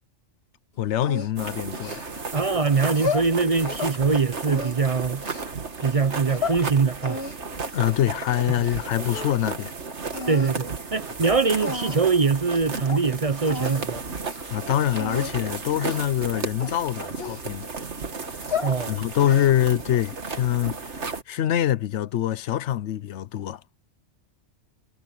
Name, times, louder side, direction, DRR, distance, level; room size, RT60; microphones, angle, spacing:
voice 1, 0.8-2.2 7.7-9.7 14.5-17.7 18.9-20.9 21.3-23.6, left 12 dB, 85° left, 1.0 m, -25 dB
sound 1, 1.0-2.4 2.8-4.0 4.4-5.5 6.1-6.6 7.0-8.8 9.1-9.7 10.1-10.6 11.2-11.3 11.6-12.2 12.5-12.6 12.9-13.0 13.5-13.8 14.2-14.4 15.0-15.3 15.8-16.2 16.6-17.8 18.3-18.8 19.2-19.7, left 4 dB, 65° left, 1.9 m, -33 dB
sound 2, 1.4-21.2, right 4 dB, 80° right, 2.1 m, -34 dB
voice 2, 2.3-5.2 5.8-7.2 8.6-8.7 10.3-14.0 18.6-19.0, right 4 dB, 40° right, 0.6 m, -23 dB
omnidirectional pair, 1.1 m